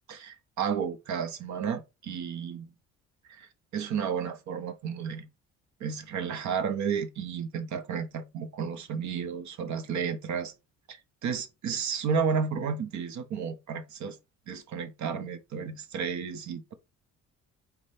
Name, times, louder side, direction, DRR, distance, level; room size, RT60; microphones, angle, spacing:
voice 1, 0.1-2.7 3.3-5.3 5.8-10.5 10.9-14.2 14.5-16.7, right 6 dB, 70° right, 0.9 m, -32 dB
5.1 x 2.3 x 3.2 m
cardioid pair, 90°, 30 cm